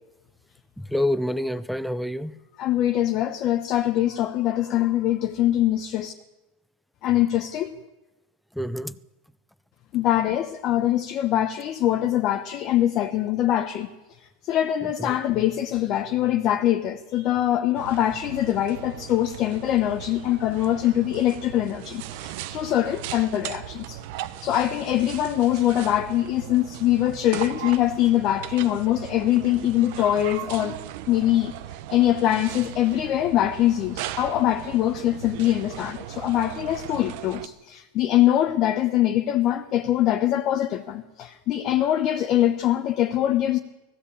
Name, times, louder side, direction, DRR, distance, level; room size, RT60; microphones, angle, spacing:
voice 1, 0.8-2.4 8.5-9.0 15.0-15.2, left 1 dB, ahead, 0.6 m, -27 dB
voice 2, 2.6-6.1 7.0-7.7 9.9-13.9 14.5-24.0 24.4-30.8 31.1-31.5 31.9-43.6, left 12 dB, 35° left, 1.0 m, -23 dB
sound 1, 17.7-37.5, right 12 dB, 55° right, 1.0 m, -38 dB
19.5 x 15.5 x 8.6 m
supercardioid pair, 160°, 0 cm